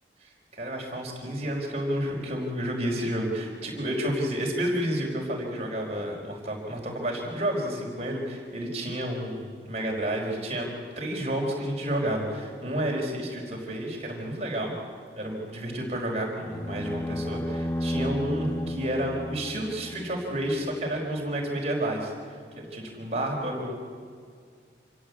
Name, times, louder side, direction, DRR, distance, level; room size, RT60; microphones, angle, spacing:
voice 1, 0.5-10.7 10.9-14.7 15.2-22.1 22.6-23.7, right 1 dB, 35° right, -1 dB, 5.0 m, -30 dB
sound 1, 16.4-20.7, left 1 dB, 15° left, 0.8 m, -33 dB
27.5 x 16.5 x 8.6 m, 2.1 s
head